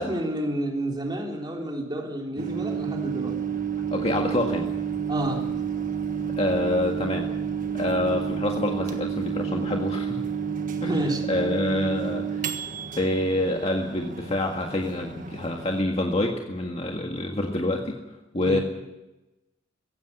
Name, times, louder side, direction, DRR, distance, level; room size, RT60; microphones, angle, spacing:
voice 1, 0.0-3.4 5.1-5.5 10.9-11.3 18.4-18.6, right 1 dB, 25° right, 1 dB, 3.6 m, -30 dB
Microwave oven, 2.4-15.8, right 7 dB, 45° right, 1.5 m, -30 dB
voice 2, 3.9-4.7 6.4-7.3 7.7-10.2 10.8-12.6 13.0-18.0 18.3-18.6, left 1 dB, 35° left, 2 dB, 1.7 m, -27 dB
16.5 x 16.0 x 9.9 m, 1.0 s
head